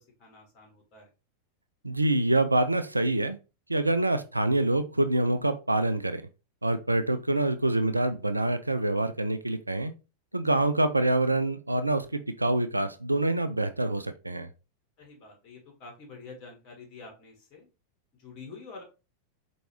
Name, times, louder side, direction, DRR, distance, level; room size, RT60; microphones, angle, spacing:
voice 1, 0.2-1.1 10.5-10.7 15.0-17.7 18.2-18.8, left 4 dB, 35° left, 1 dB, 1.3 m, -47 dB
voice 2, 1.8-3.4 3.7-6.2 6.6-9.9 10.3-14.5, right 2 dB, 85° right, 10 dB, 0.3 m, -26 dB
4.5 x 2.5 x 3.1 m, 0.30 s
figure-of-eight pair, 90°, 0 cm